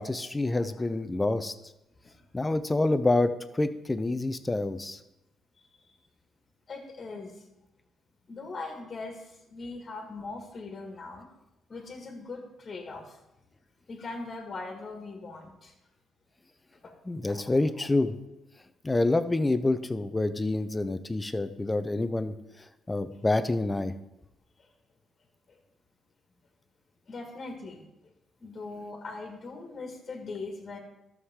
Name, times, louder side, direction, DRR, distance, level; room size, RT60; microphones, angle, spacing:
voice 1, 0.0-1.5 2.3-5.0 17.1-18.1 18.8-22.3 22.9-23.9, left 2 dB, 15° left, 12 dB, 0.6 m, -27 dB
voice 2, 6.7-7.4 8.3-11.3 11.7-13.2 13.9-15.7 16.8-16.9 17.3-17.9 23.1-23.2 27.1-27.8 28.4-30.8, left 3 dB, 40° left, 2 dB, 1.8 m, -41 dB
12.5 x 6.5 x 3.7 m, 0.91 s
cardioid pair, 90°, 0 cm